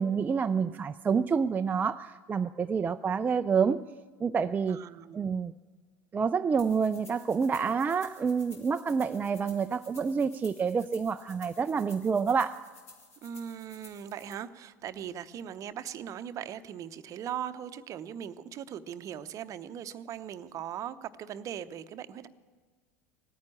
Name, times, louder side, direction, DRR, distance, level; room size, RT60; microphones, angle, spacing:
voice 1, 0.0-3.9 4.2-4.8 5.1-5.5 6.1-12.6, right 6 dB, 20° right, 9 dB, 0.4 m, -28 dB
voice 2, 4.7-5.2 13.2-22.3, right 9 dB, 40° right, 13 dB, 0.7 m, -39 dB
sound 1, 6.6-14.3, left 3 dB, 80° left, 2.7 m, -54 dB
17.5 x 9.6 x 8.5 m, 1.5 s
figure-of-eight pair, 75°, 8 cm